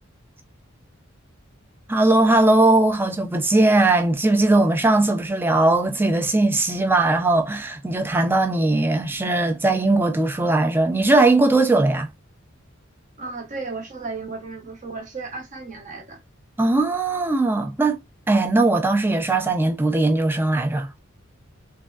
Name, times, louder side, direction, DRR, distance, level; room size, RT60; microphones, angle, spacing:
voice 1, 1.9-12.1 16.6-18.0 18.3-20.9, right 2 dB, 10° right, 0.4 m, -19 dB
voice 2, 13.2-16.2, right 3 dB, 40° right, 0.7 m, -34 dB
3.5 x 2.2 x 2.3 m
head